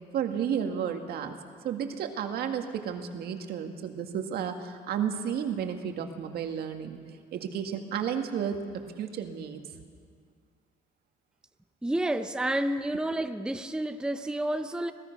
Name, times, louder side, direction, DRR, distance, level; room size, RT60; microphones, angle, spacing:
voice 1, 0.1-1.4 1.6-7.0 7.3-8.6 9.0-9.6, right 8 dB, 70° right, 5 dB, 1.9 m, -32 dB
voice 2, 11.8-14.9, right 1 dB, 5° right, 8 dB, 0.8 m, -30 dB
25.0 x 18.5 x 6.0 m, 2.1 s
cardioid pair, 110°, 17 cm